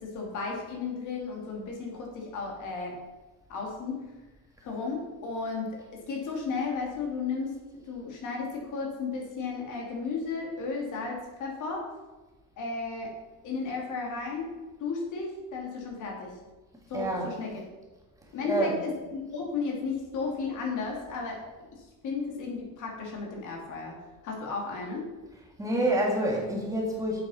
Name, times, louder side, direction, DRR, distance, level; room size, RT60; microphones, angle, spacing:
voice 1, 0.0-3.0 3.5-4.0 4.6-7.6 7.9-11.8 12.6-13.1 13.4-14.5 14.8-16.4 16.9-17.6 18.3-21.4 22.0-24.0 24.2-25.1, left 4 dB, 55° left, -1 dB, 2.7 m, -34 dB
voice 2, 16.9-17.4 18.4-18.8 25.6-27.2, right 1 dB, 10° right, -2 dB, 1.9 m, -27 dB
8.0 x 7.3 x 5.7 m, 1.1 s
cardioid pair, 180°, 37 cm